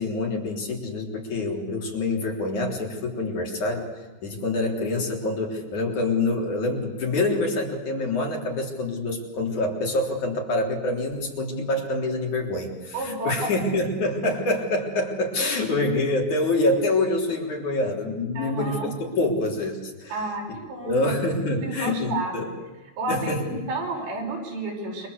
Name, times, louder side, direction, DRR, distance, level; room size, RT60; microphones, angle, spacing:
voice 1, 0.0-3.9 4.2-20.1 20.8-22.5 23.1-23.7, left 2 dB, 45° left, 1 dB, 4.7 m, -26 dB
voice 2, 12.9-13.5 18.3-18.9 20.1-21.2 21.6-22.5 23.0-25.1, right 2 dB, 75° right, 1 dB, 8.1 m, -31 dB
29.0 x 24.5 x 8.2 m, 1.2 s
omnidirectional pair, 5.1 m